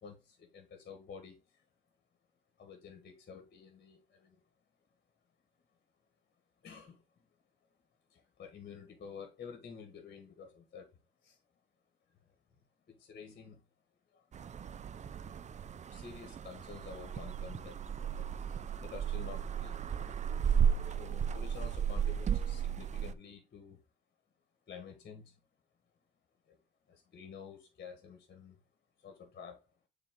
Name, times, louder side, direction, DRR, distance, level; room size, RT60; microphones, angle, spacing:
voice 1, 0.0-1.6 2.6-4.4 6.6-7.2 8.1-10.9 11.2-11.4 12.3-12.4 12.9-13.6 14.1-14.3 15.2-15.3 15.8-20.3 20.9-23.8 24.7-25.4 26.5-26.6 26.9-28.6 29.0-29.6, left 6 dB, 50° left, 1.7 m, -50 dB
sound 1, 14.3-23.1, right 8 dB, 35° right, 0.4 m, -34 dB
6.8 x 4.1 x 3.7 m
cardioid pair, 90°, 20 cm